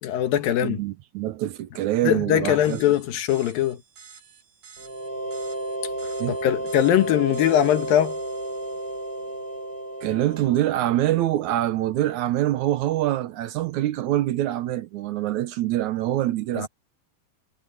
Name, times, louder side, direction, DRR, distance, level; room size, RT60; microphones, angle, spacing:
voice 1, 0.0-0.8 2.0-3.8 6.3-8.2 16.6-16.7, left 11 dB, 75° left, 3.0 m, -21 dB
voice 2, 0.6-2.8 6.2-6.4 10.0-16.7, right 14 dB, 75° right, 1.9 m, -25 dB
sound 1, 2.6-9.8, right 6 dB, 90° right, 7.9 m, -51 dB
sound 2, 4.8-11.4, right 1 dB, 35° right, 8.6 m, -32 dB
omnidirectional pair, 4.2 m